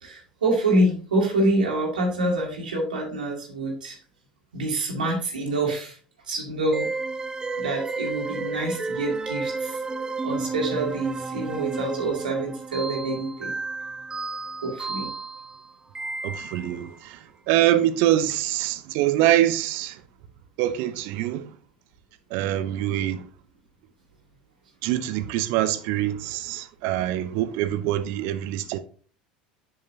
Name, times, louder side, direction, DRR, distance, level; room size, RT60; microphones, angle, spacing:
voice 1, 0.0-4.0 4.5-6.0 6.3-6.9 7.6-9.8 10.2-13.5 14.6-15.1, right 1 dB, 80° right, 1.8 m, -26 dB
sound 1, 6.7-16.9, right 3 dB, 15° right, 0.6 m, -32 dB
voice 2, 16.2-17.2 17.5-20.0 20.6-21.5 22.3-23.2 24.8-28.8, right 13 dB, 60° right, 0.7 m, -24 dB
7.5 x 6.5 x 2.8 m
figure-of-eight pair, 75°, 4 cm